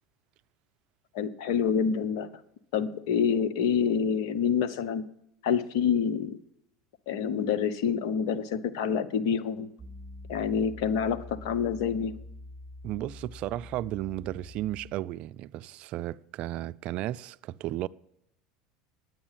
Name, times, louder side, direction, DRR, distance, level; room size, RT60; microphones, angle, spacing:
voice 1, 1.1-2.4 2.7-5.0 5.4-6.4 7.1-9.7 10.3-12.1, left 7 dB, 70° left, 0.9 m, -27 dB
Piano, 9.8-14.9, left 1 dB, 15° right, 1.9 m, -45 dB
voice 2, 12.8-17.9, right 14 dB, 55° right, 0.4 m, -34 dB
9.7 x 9.4 x 7.4 m
hypercardioid pair, 90°, 2 cm